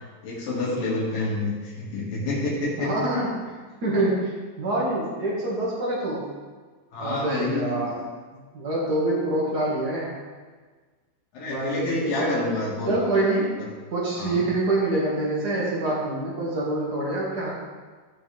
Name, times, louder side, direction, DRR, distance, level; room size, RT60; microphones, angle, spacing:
voice 1, 0.2-2.9 6.9-7.9 11.3-12.9 13.6-13.7 14.2-14.5, left 2 dB, 55° left, -6 dB, 3.1 m, -28 dB
voice 2, 2.8-6.2 7.0-7.9 8.5-10.1 11.4-12.4 12.9-13.5 13.9-17.5, right 2 dB, 75° right, -6 dB, 0.9 m, -26 dB
16.0 x 6.0 x 3.5 m, 1.4 s
omnidirectional pair, 5.4 m